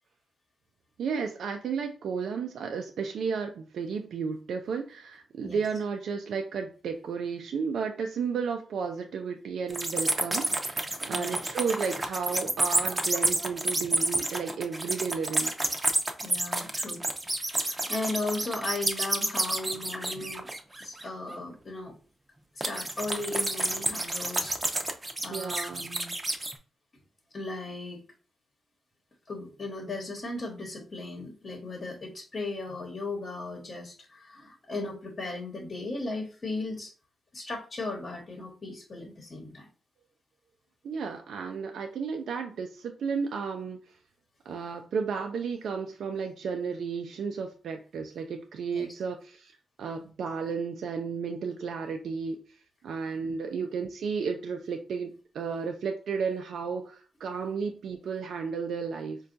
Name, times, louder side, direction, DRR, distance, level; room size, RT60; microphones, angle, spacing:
voice 1, 1.0-15.6 17.5-17.7 25.3-25.9 40.8-43.8 44.5-49.5 49.8-52.4 52.8-59.2, right 5 dB, 75° right, 4 dB, 0.4 m, -33 dB
sound 1, 9.7-21.0 22.6-26.5, right 2 dB, 25° right, 0.6 m, -29 dB
voice 2, 11.1-11.5 16.2-17.1 17.5-20.5 20.8-21.9 22.5-26.1 27.3-28.0 29.3-36.9 37.3-39.7 48.7-48.9 53.2-53.3, left 2 dB, 45° left, 1 dB, 1.0 m, -37 dB
4.3 x 2.3 x 2.6 m, 0.37 s
cardioid pair, 60°, 0 cm